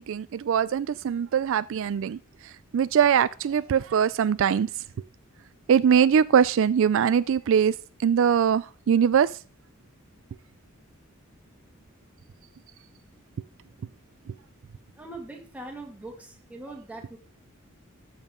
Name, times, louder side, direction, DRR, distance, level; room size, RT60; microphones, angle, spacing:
voice 1, 0.0-2.2 2.7-4.7 5.7-7.7 8.0-9.3, right 8 dB, 65° right, 0.3 m, -22 dB
voice 2, 15.0-17.2, right 2 dB, 5° right, 1.9 m, -41 dB
12.5 x 7.2 x 3.7 m
head